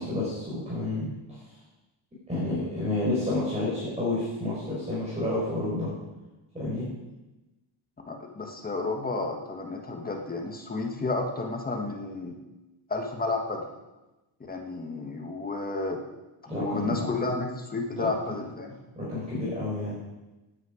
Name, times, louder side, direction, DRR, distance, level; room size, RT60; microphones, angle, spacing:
voice 1, 0.0-1.4 2.3-5.9 6.5-6.9 16.5-17.0 18.0-18.4 18.9-20.0, left 2 dB, 15° right, -8 dB, 4.8 m, -30 dB
voice 2, 8.1-12.4 12.9-13.7 14.4-16.0 16.5-18.8, left 3 dB, 20° left, 2 dB, 1.4 m, -31 dB
17.0 x 9.7 x 5.0 m, 1.1 s
cardioid pair, 175°, 48 cm